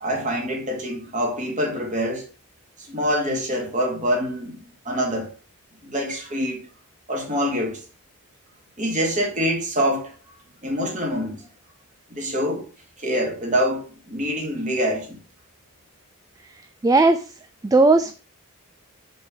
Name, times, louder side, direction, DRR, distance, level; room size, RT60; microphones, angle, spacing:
voice 1, 0.0-2.2 2.8-4.6 4.9-5.3 5.8-6.6 7.1-7.8 8.8-10.1 10.6-11.5 12.1-12.6 13.0-15.2, equal, 35° right, 2.1 m, -25 dB
voice 2, 16.8-17.3 17.6-18.1, right 3 dB, 15° right, 0.3 m, -16 dB
6.4 x 5.2 x 4.9 m
head